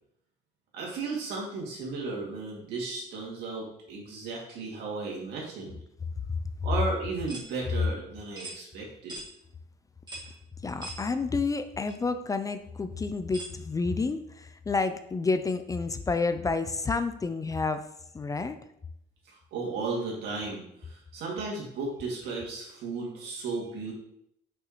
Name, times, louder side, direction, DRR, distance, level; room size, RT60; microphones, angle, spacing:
voice 1, 0.7-5.8 6.6-9.2 19.3-23.9, right 3 dB, 80° right, -2 dB, 2.3 m, -35 dB
sound 1, 7.3-7.5 8.4-8.6 9.1-9.3 10.1-10.3 10.8-11.0 11.9-12.0 13.3-13.6, right 1 dB, 25° right, 1.7 m, -40 dB
voice 2, 10.6-17.9 18.1-18.6, left 4 dB, 20° left, 10 dB, 0.4 m, -29 dB
6.3 x 5.6 x 3.0 m, 0.75 s
cardioid pair, 110°, 17 cm